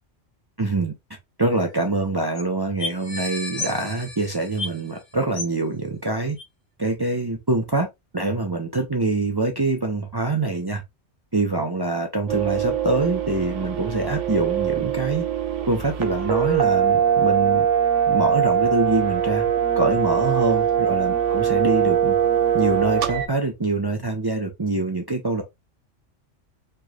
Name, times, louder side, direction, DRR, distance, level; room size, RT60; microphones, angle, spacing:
voice 1, 0.6-0.9 1.4-6.4 6.8-7.9 8.1-10.8 11.3-15.2 15.7-17.7 18.1-19.5 19.7-22.2 22.5-25.4, right 2 dB, 25° right, 0.5 m, -24 dB
sound 1, 1.5-1.6 1.8-1.9 2.4-2.5 2.8-5.0 5.3-5.6 6.4-6.5, left 3 dB, 85° left, 1.4 m, -32 dB
sound 2, 12.3-23.3, right 9 dB, 85° right, 1.0 m, -22 dB
4.5 x 3.0 x 2.3 m
omnidirectional pair, 1.2 m